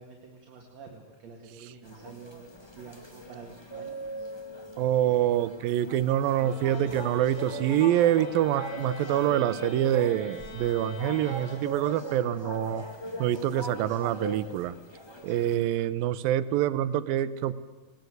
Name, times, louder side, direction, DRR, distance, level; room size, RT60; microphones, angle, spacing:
voice 1, 0.0-2.5 2.8-4.3, right 5 dB, 55° right, 1 dB, 3.1 m, -48 dB
sound 1, 1.8-15.5, equal, 15° left, 0.8 m, -40 dB
voice 2, 4.8-12.8 13.2-14.8 15.2-17.5, right 12 dB, 85° right, 14 dB, 2.6 m, -26 dB
sound 2, 6.4-12.1, left 3 dB, 50° left, 4.5 m, -45 dB
20.0 x 19.5 x 8.0 m, 1.2 s
omnidirectional pair, 4.0 m